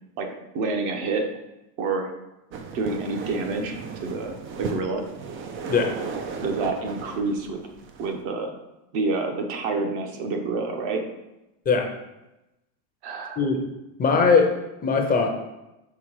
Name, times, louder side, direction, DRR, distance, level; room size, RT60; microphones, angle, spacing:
voice 1, 0.2-1.3 1.8-2.1 2.7-5.0 6.4-7.6 8.0-8.5 8.9-11.1 13.0-13.5, right 3 dB, 50° right, 3 dB, 1.1 m, -28 dB
sound 1, 2.5-8.2, right 5 dB, 30° right, 0.4 m, -35 dB
voice 2, 14.0-14.5 14.8-15.3, left 5 dB, 20° left, 3 dB, 0.6 m, -20 dB
6.0 x 3.5 x 4.7 m, 0.97 s
supercardioid pair, 135°, 48 cm